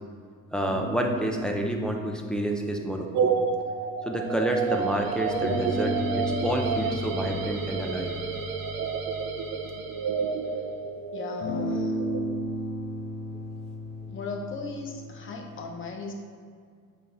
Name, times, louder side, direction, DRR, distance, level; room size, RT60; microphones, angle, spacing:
voice 1, 0.5-3.3 4.0-8.1, right 1 dB, ahead, 1 dB, 0.4 m, -29 dB
sound 1, 0.7-4.6 5.4-10.5 11.4-15.6, left 1 dB, 60° left, 1.2 m, -35 dB
sound 2, 3.1-12.3, right 5 dB, 60° right, 0.5 m, -30 dB
sound 3, 4.3-10.7, right 4 dB, 80° right, 1.0 m, -38 dB
voice 2, 11.1-12.0 14.1-16.1, left 3 dB, 35° left, 2 dB, 0.8 m, -37 dB
8.0 x 3.4 x 3.8 m, 2.1 s
cardioid pair, 150°, 33 cm